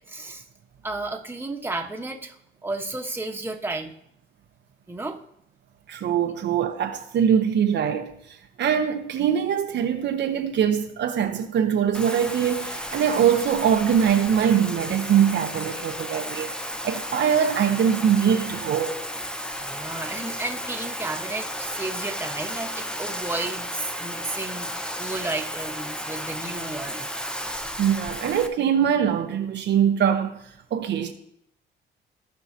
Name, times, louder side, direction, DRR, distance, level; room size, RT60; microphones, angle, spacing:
voice 1, 0.1-0.5 0.8-2.4 2.6-3.9 4.9-5.2 19.6-24.7 25.0-27.2, right 2 dB, 10° right, 1.2 m, -32 dB
voice 2, 5.9-8.1 8.6-16.5 16.8-19.0 27.8-30.3 30.7-31.1, right 8 dB, 65° right, 0.8 m, -22 dB
Bathtub (filling or washing), 11.9-28.5, equal, 5° left, 0.7 m, -33 dB
16.0 x 5.5 x 2.8 m
cardioid pair, 90°, 20 cm